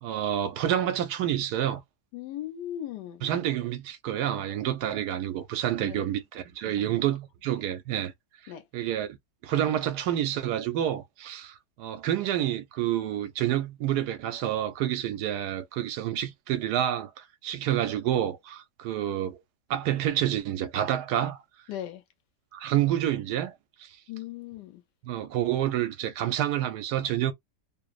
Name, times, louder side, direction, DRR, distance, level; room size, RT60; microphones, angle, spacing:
voice 1, 0.0-1.8 3.2-8.1 8.7-9.1 9.4-19.4 19.7-21.4 22.5-23.5 23.8-23.9 25.0-27.3, right 11 dB, 80° right, 1.1 m, -28 dB
voice 2, 2.1-3.3 5.8-6.1 6.7-7.0 8.5-8.6 21.7-22.0 24.1-24.8, left 12 dB, 85° left, 1.3 m, -38 dB
3.0 x 2.0 x 2.3 m
omnidirectional pair, 1.8 m